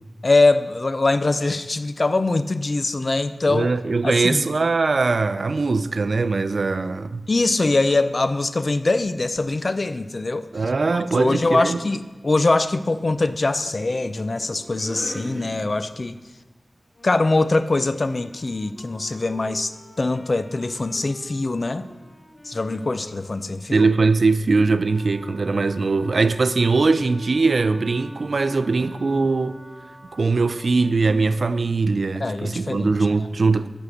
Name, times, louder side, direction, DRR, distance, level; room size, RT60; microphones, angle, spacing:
voice 1, 0.2-3.7 4.0-4.4 7.3-10.5 11.1-16.2 17.0-19.7 20.0-21.8 22.4-23.9 32.2-32.9, left 2 dB, 50° left, 0.4 m, -22 dB
voice 2, 3.5-7.2 10.5-11.8 23.7-29.6 30.1-33.7, right 3 dB, 75° right, 0.4 m, -21 dB
sound 1, 9.2-9.6 10.9-16.2, equal, 5° left, 1.4 m, -42 dB
Wind instrument woodwind instrument, 16.9-24.7, equal, 30° left, 0.9 m, -48 dB
Wind instrument woodwind instrument 2, 24.6-31.6, equal, 55° right, 2.5 m, -48 dB
8.2 x 6.2 x 6.5 m
wide cardioid pair, 75°, 0 cm